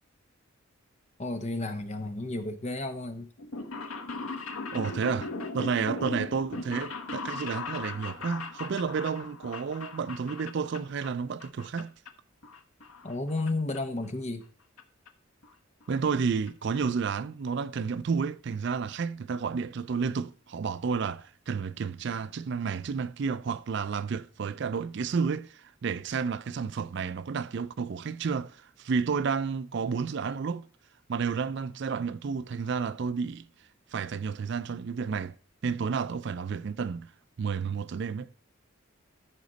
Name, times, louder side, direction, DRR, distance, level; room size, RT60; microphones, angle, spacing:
voice 1, 1.2-3.3 5.8-5.9 13.0-14.4, left 2 dB, 30° left, 0.9 m, -32 dB
sound 1, 3.4-11.1 11.4-12.1 12.4-13.5 13.7-13.8 14.8-14.9 15.1-15.2 15.4-15.5 15.8-16.1 16.5-16.6 16.7-16.8, left 3 dB, 85° left, 1.1 m, -38 dB
voice 2, 4.7-11.9 15.9-30.7 31.1-33.5 33.9-35.4 35.6-37.1 37.4-38.3, right 5 dB, 55° right, 0.4 m, -31 dB
13.5 x 5.2 x 4.0 m
head